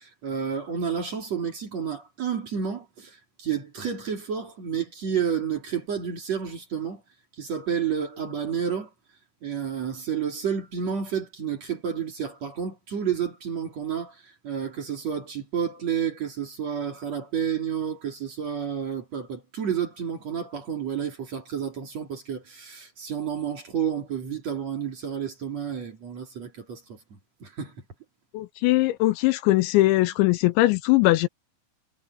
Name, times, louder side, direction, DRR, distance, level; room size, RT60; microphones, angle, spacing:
voice 1, 0.0-7.0 7.4-8.9 9.4-27.0 27.4-27.7, right 8 dB, 40° right, 3.2 m, -30 dB
voice 2, 28.3-31.3, left 18 dB, 80° left, 2.9 m, -21 dB
omnidirectional pair, 5.4 m